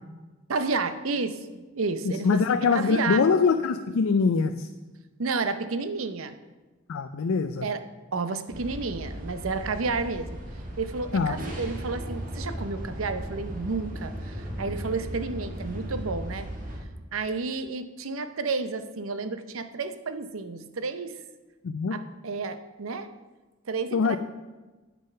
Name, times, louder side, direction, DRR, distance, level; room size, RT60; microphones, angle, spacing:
voice 1, 0.5-3.3 5.2-6.4 7.6-7.8 8.1-10.4 10.8-16.5 17.1-21.1 21.9-23.1 23.7-24.2, right 4 dB, 85° right, 11 dB, 0.7 m, -31 dB
voice 2, 2.0-4.7 6.9-7.7 11.1-11.4 21.6-22.0 23.9-24.2, left 5 dB, 85° left, 9 dB, 0.4 m, -23 dB
sound 1, 8.5-16.8, equal, 45° right, 1.5 m, -36 dB
8.6 x 6.6 x 5.6 m, 1.2 s
head